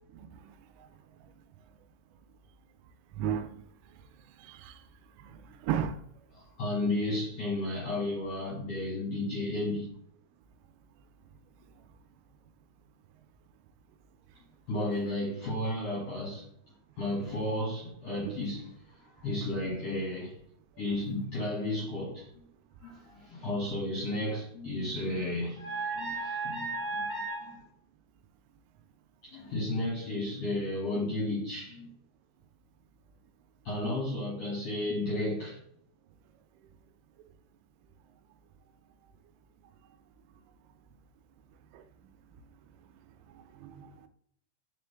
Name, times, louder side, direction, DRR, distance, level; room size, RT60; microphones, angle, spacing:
voice 1, 0.1-0.6 3.2-3.6 4.4-4.8 5.2-6.0 18.2-18.3 41.7-41.8 43.6-43.9, right 9 dB, 85° right, 3.1 m, -34 dB
voice 2, 6.4-9.9 14.7-16.5 17.0-20.4 20.8-22.5 22.8-27.6 29.2-31.9 33.6-35.6, left 1 dB, 50° left, 1.9 m, -33 dB
7.0 x 4.5 x 3.4 m
omnidirectional pair, 5.8 m